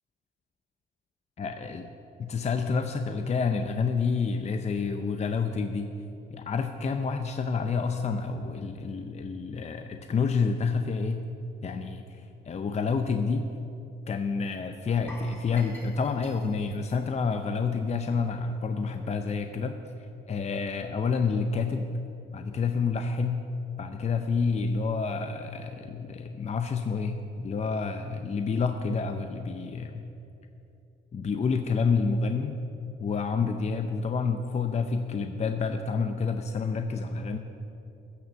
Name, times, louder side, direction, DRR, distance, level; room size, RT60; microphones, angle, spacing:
voice 1, 1.4-1.9 2.2-5.9 6.3-11.3 11.6-12.0 12.5-13.5 14.1-19.8 20.3-21.9 22.3-23.5 23.8-30.0 31.1-32.6 33.0-37.4, left 5 dB, 35° left, 7 dB, 0.6 m, -28 dB
sound 1, 15.1-18.1 18.3-18.5 19.0-19.1, left 1 dB, 10° left, 3.1 m, -48 dB
15.0 x 6.6 x 6.9 m, 2.8 s
cardioid pair, 90°, 20 cm